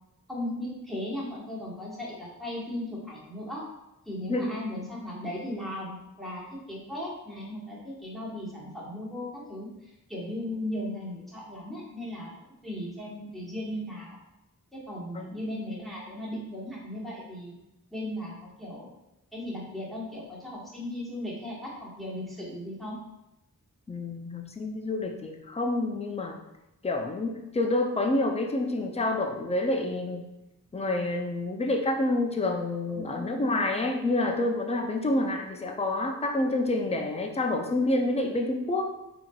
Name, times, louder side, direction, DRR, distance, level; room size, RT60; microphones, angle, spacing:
voice 1, 0.3-3.6 4.0-12.3 12.6-14.2 14.7-17.6 17.9-18.9 19.3-23.0 33.0-33.5, left 1 dB, ahead, -7 dB, 1.3 m, -37 dB
voice 2, 4.3-4.6 15.1-15.4 23.9-26.4 26.8-30.3 30.7-38.9, left 2 dB, 20° left, 3 dB, 0.4 m, -28 dB
3.6 x 2.9 x 2.3 m, 0.93 s
wide cardioid pair, 40°, 36 cm